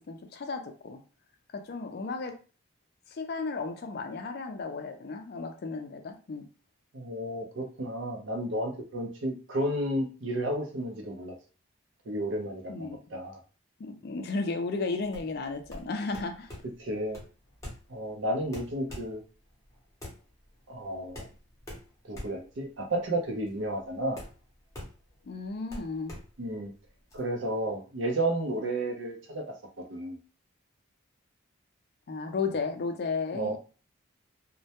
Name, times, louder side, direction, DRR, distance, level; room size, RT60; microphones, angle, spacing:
voice 1, 0.1-1.0 1.5-2.3 3.1-6.5 12.7-13.0 13.8-16.5 25.2-26.1 32.1-33.6, left 4 dB, 50° left, 6 dB, 0.4 m, -34 dB
voice 2, 6.9-11.3 12.1-13.4 16.8-17.2 17.9-19.2 20.7-21.2 22.0-24.2 26.4-26.7 27.1-29.4 29.9-30.2 33.3-33.6, right 1 dB, 65° right, 2 dB, 0.6 m, -32 dB
sound 1, 15.0-27.2, left 1 dB, 15° left, 0.7 m, -46 dB
2.1 x 2.1 x 2.8 m, 0.36 s
head